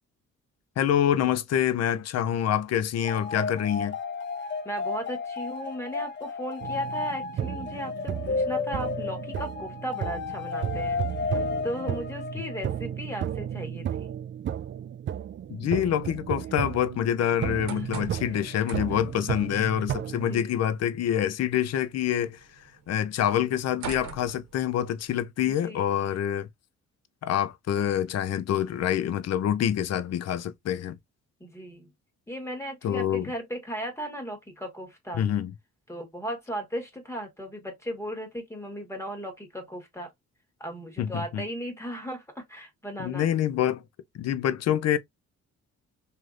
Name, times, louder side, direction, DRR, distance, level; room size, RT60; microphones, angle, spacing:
voice 1, 0.8-4.0 15.5-22.4 22.9-26.5 27.2-30.9 32.8-33.3 35.1-35.5 41.0-41.4 43.0-43.8 44.1-45.0, left 10 dB, 60° left, 0.6 m, -26 dB
sound 1, 3.0-12.8, left 4 dB, 40° left, 1.1 m, -33 dB
voice 2, 4.6-14.1 17.4-18.1 20.0-20.5 25.5-26.2 31.4-31.9 32.3-35.2 35.9-40.1 40.6-43.3, equal, 10° left, 1.4 m, -36 dB
sound 2, 6.6-20.4, right 9 dB, 40° right, 0.4 m, -34 dB
sound 3, 17.4-25.1, right 6 dB, 65° right, 0.9 m, -45 dB
3.2 x 2.8 x 2.4 m
cardioid pair, 90°, 30 cm